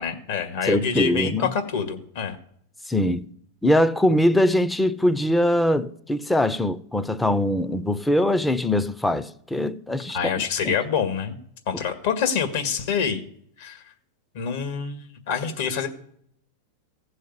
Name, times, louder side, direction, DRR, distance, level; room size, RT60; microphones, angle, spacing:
voice 1, 0.0-2.4 10.1-11.4 11.7-13.2 13.6-13.8 14.3-15.9, left 7 dB, 65° left, 1.9 m, -26 dB
voice 2, 0.6-1.5 2.9-3.3 3.6-10.2 10.6-10.7, left 1 dB, 5° left, 0.6 m, -22 dB
15.5 x 6.5 x 9.5 m
supercardioid pair, 150°, 0 cm